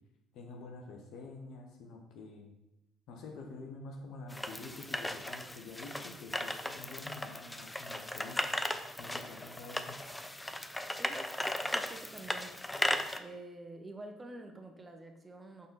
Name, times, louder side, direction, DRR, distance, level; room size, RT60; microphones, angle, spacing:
voice 1, 0.3-2.5 3.1-8.4 9.0-9.9, left 3 dB, 65° left, 2 dB, 1.3 m, -48 dB
sound 1, 4.3-13.2, left 1 dB, 10° left, 0.5 m, -37 dB
voice 2, 11.6-12.6 13.2-15.7, right 2 dB, 20° right, 4 dB, 1.0 m, -48 dB
7.4 x 4.2 x 4.1 m, 0.90 s
hypercardioid pair, 55°, 0 cm